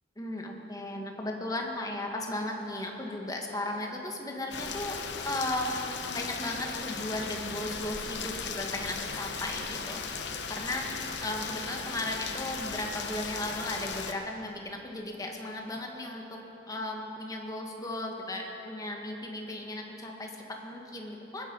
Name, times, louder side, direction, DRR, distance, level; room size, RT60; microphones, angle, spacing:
voice 1, 0.2-5.0 5.2-10.2 10.5-10.9 11.2-16.4 16.7-21.5, left 1 dB, 20° left, 1 dB, 1.5 m, -36 dB
Rain, 4.5-14.1, left 5 dB, 90° left, 1.0 m, -37 dB
21.5 x 10.0 x 5.3 m, 3.0 s
head